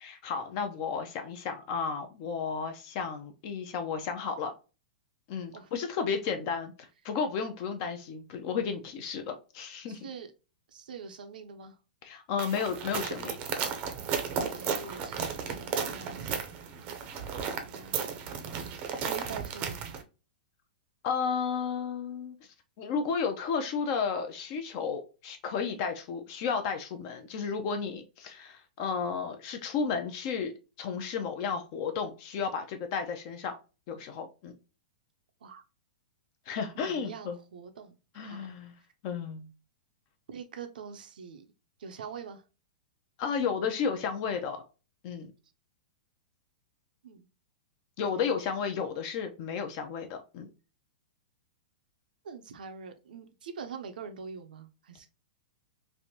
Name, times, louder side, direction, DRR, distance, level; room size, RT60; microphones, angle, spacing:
voice 1, 0.0-4.5 5.3-10.1 12.0-13.4 21.0-22.4 22.8-30.5 30.8-33.6 33.9-34.5 36.5-37.4 38.2-38.7 39.0-39.5 43.2-44.6 45.0-45.3 48.0-50.5, left 6 dB, 40° left, 0.5 m, -33 dB
voice 2, 9.9-10.3 10.7-11.7 14.5-16.4 17.7-18.1 18.5-20.0 35.4-35.6 36.8-38.5 40.3-41.4 41.8-42.4 47.0-47.3 52.2-55.1, right 6 dB, 85° right, 0.5 m, -44 dB
sound 1, 12.4-20.0, right 6 dB, 30° right, 0.5 m, -34 dB
3.3 x 2.5 x 2.7 m
hypercardioid pair, 155°, 5 cm